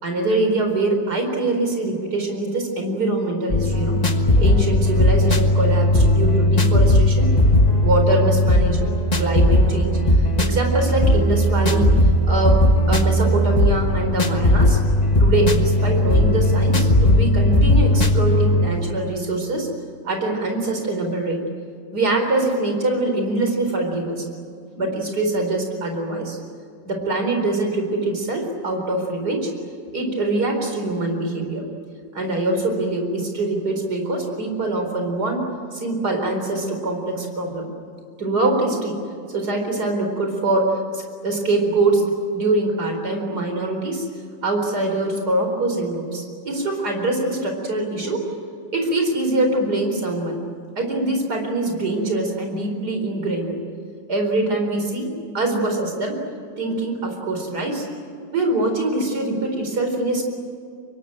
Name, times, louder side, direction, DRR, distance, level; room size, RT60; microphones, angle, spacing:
voice 1, 0.0-7.3 7.8-10.0 10.4-11.9 12.3-12.6 12.9-14.8 15.2-19.7 20.0-21.4 21.9-24.2 24.7-26.4 26.8-29.5 29.9-31.6 32.1-37.7 38.2-39.0 39.3-42.0 42.3-44.1 44.4-48.2 48.7-50.4 50.8-53.6 54.1-55.1 55.3-56.2 56.6-57.9 58.3-60.2, right 2 dB, 50° right, 3 dB, 4.9 m, -23 dB
sound 1, 3.5-18.7, left 1 dB, 25° left, 1.3 m, -17 dB
26.0 x 22.0 x 9.1 m, 2.3 s
omnidirectional pair, 2.2 m